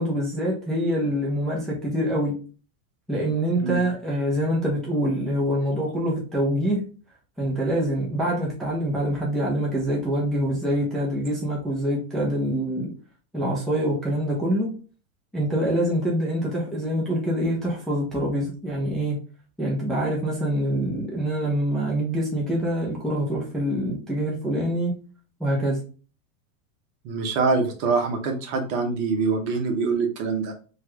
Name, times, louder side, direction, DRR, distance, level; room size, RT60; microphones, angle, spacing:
voice 1, 0.0-2.4 3.1-6.8 7.4-12.9 13.3-14.7 15.3-19.2 19.6-25.0 25.4-25.8, equal, ahead, -5 dB, 0.5 m, -25 dB
voice 2, 27.0-30.5, right 4 dB, 55° right, 4 dB, 0.9 m, -24 dB
3.2 x 2.3 x 3.1 m, 0.37 s
supercardioid pair, 135°, 45 cm